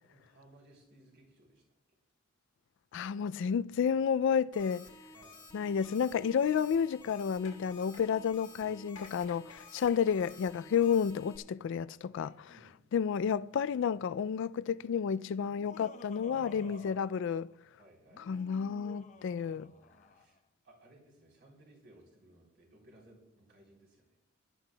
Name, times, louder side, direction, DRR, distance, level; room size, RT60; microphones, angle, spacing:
voice 1, 0.0-1.6 3.0-3.1 5.1-5.4 8.6-8.8 12.5-12.7 16.2-16.9 17.8-18.4 19.1-24.2, right 2 dB, 55° right, 3.7 m, -58 dB
voice 2, 2.9-4.9 5.5-12.5 12.9-17.5 18.3-19.7, left 7 dB, 60° left, 0.3 m, -31 dB
sound 1, 4.5-11.4, left 3 dB, 20° left, 1.5 m, -53 dB
sound 2, 6.6-11.5 12.1-12.3, left 4 dB, 80° left, 1.9 m, -56 dB
Laughter, 15.4-17.6 18.0-20.4, left 2 dB, 35° left, 0.7 m, -55 dB
21.5 x 11.5 x 2.3 m
head